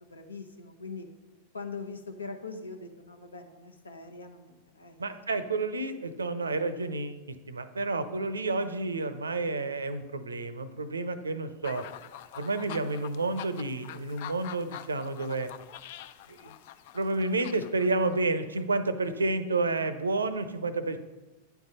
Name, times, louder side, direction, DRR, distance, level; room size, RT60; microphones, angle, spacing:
voice 1, 0.0-1.1 1.5-5.0, left 4 dB, 75° left, 5 dB, 0.9 m, -42 dB
voice 2, 5.0-7.2 7.5-11.8 12.4-15.5 16.3-16.5 16.9-21.0, right 3 dB, 75° right, 12 dB, 0.6 m, -30 dB
sound 1, 11.6-18.4, left 11 dB, 50° left, 0.4 m, -45 dB
9.4 x 4.6 x 5.4 m, 1.1 s
figure-of-eight pair, 90°, 0 cm